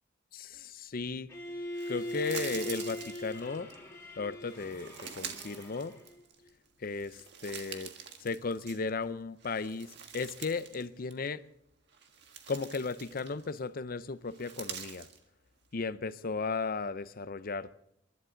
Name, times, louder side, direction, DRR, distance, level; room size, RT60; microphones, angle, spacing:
voice 1, 0.3-1.3 1.9-3.7 4.2-5.9 6.8-7.9 8.2-11.4 12.5-15.1 15.7-17.8, left 4 dB, 50° left, 0.6 m, -35 dB
Bowed string instrument, 1.3-6.2, left 1 dB, 15° left, 3.1 m, -41 dB
sound 1, 1.7-3.8 4.5-6.5 6.9-9.0 9.4-10.8 11.1-11.3 11.9-13.6 14.3-15.2, right 7 dB, 60° right, 1.6 m, -45 dB
28.5 x 12.0 x 3.8 m
head